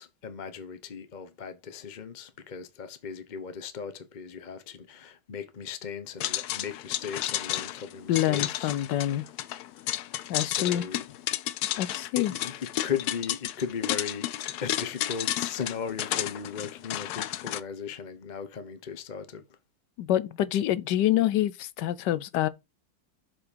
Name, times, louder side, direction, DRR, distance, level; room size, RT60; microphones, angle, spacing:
voice 1, 0.0-8.7 10.4-11.1 12.2-19.4, left 7 dB, 35° left, 0.8 m, -37 dB
sound 1, 6.2-17.6, left 13 dB, 70° left, 1.1 m, -32 dB
voice 2, 8.1-9.2 10.3-10.8 11.8-12.3 20.0-22.5, left 12 dB, 90° left, 1.3 m, -26 dB
7.4 x 4.5 x 5.1 m
omnidirectional pair, 1.8 m